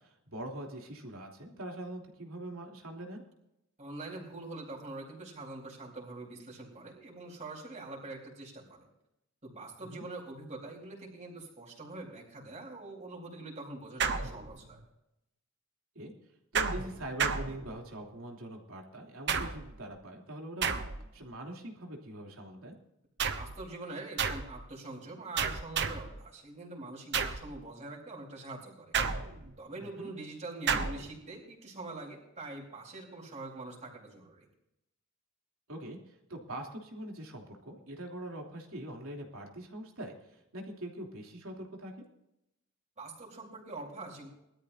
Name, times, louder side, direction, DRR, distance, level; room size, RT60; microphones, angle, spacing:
voice 1, 0.0-3.2 9.8-10.0 15.9-16.1 16.5-20.7 21.1-22.7 29.8-30.1 35.7-42.0, right 1 dB, 90° right, 0 dB, 3.1 m, -43 dB
voice 2, 3.8-8.9 9.4-14.8 23.4-29.0 29.6-34.5 43.0-44.3, right 2 dB, 35° right, -2 dB, 4.3 m, -44 dB
sound 1, 14.0-14.8 16.5-18.1 19.3-19.8 20.6-21.2 23.2-23.6 24.2-24.6 25.4-26.2 27.1-27.5 28.9-29.6 30.7-31.1, right 6 dB, 55° right, 1.1 m, -32 dB
21.0 x 13.0 x 2.7 m, 0.85 s
head